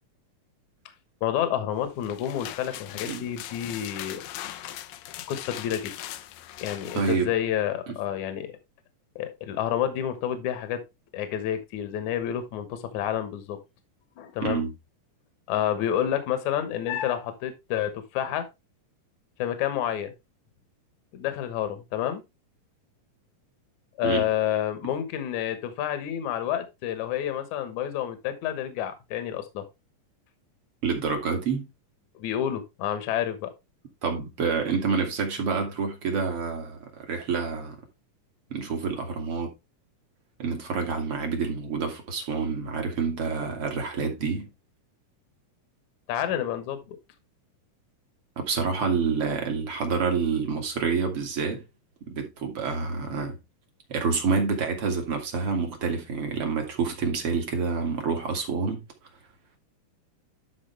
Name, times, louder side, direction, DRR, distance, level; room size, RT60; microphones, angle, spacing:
voice 1, 1.2-4.2 5.3-5.9 6.6-8.5 9.2-10.8 11.1-13.6 14.2-14.6 15.5-18.5 19.4-20.1 21.1-22.2 24.0-29.6 32.2-33.5 46.1-47.0, left 10 dB, 65° left, 2.5 m, -29 dB
sound 1, 1.9-7.2, left 13 dB, 90° left, 2.5 m, -40 dB
voice 2, 6.9-7.3 7.9-8.0 14.4-14.7 24.0-24.3 30.8-31.7 34.0-37.8 38.5-39.5 40.4-44.5 48.4-51.6 52.1-53.4 53.9-58.8, right 5 dB, 45° right, 2.7 m, -28 dB
12.0 x 4.8 x 3.3 m
omnidirectional pair, 3.8 m